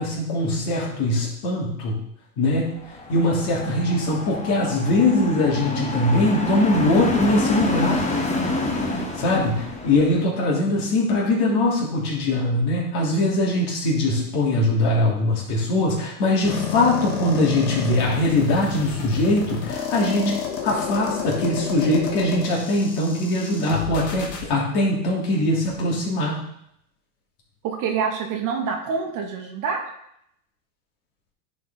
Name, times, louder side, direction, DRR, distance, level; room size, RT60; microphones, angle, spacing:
voice 1, 0.0-2.0 2.4-2.8 3.1-8.1 8.9-20.3 20.6-26.4, left 1 dB, 55° left, -4 dB, 3.3 m, -22 dB
sound 1, 2.8-10.2, left 2 dB, 15° left, 1.2 m, -28 dB
sound 2, 16.4-24.4, left 7 dB, 85° left, 1.9 m, -30 dB
voice 2, 27.6-29.8, right 6 dB, 40° right, 3 dB, 1.4 m, -27 dB
10.5 x 4.5 x 4.0 m, 0.75 s
supercardioid pair, 120°, 48 cm